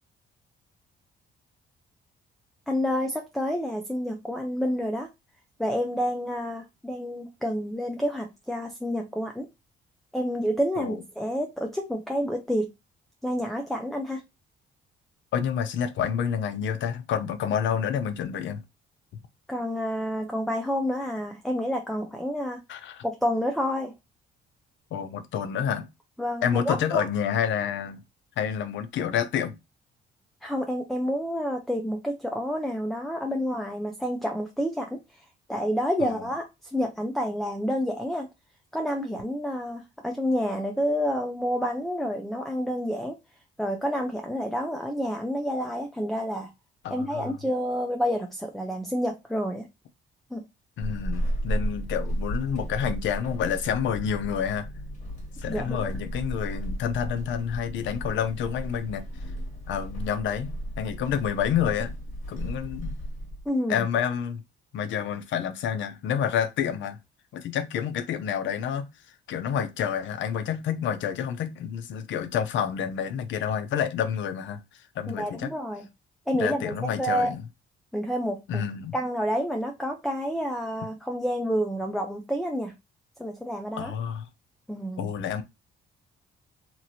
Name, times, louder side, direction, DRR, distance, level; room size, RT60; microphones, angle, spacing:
voice 1, 2.7-5.1 5.6-9.5 10.1-12.7 13.2-14.2 19.5-22.6 23.0-23.9 26.2-27.0 30.4-36.4 36.7-38.3 38.7-43.2 43.6-46.5 46.9-49.7 50.3-50.4 55.5-55.9 63.5-63.9 75.1-75.9 76.3-77.3 77.9-78.6 78.9-82.7 83.2-83.9 84.7-85.1, equal, ahead, 0.5 m, -29 dB
voice 2, 15.3-18.6 22.7-23.0 24.9-25.9 26.4-28.0 28.4-29.5 36.0-36.1 46.8-47.4 50.8-54.7 55.4-59.0 59.7-62.0 62.3-63.0 63.7-64.4 64.7-67.0 67.3-68.9 69.3-75.5 76.3-77.4 78.5-78.9 83.8-84.3 85.0-85.4, left 8 dB, 70° left, 0.5 m, -29 dB
Walk footsteps / Squeak, 50.8-63.5, equal, 35° left, 1.7 m, -34 dB
2.9 x 2.5 x 2.7 m
cardioid pair, 90°, 20 cm